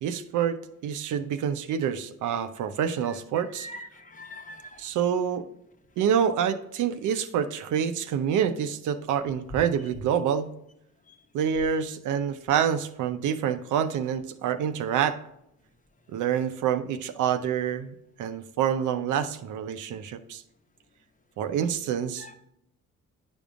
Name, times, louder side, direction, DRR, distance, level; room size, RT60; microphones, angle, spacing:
voice 1, 0.0-3.7 4.8-5.5 6.0-10.5 11.3-15.2 16.1-20.4 21.4-22.3, right 8 dB, 80° right, 10 dB, 0.7 m, -27 dB
voice 2, 3.6-4.8 22.2-22.3, left 1 dB, 25° left, 5 dB, 0.9 m, -43 dB
9.9 x 5.3 x 2.4 m, 0.79 s
cardioid pair, 90°, 30 cm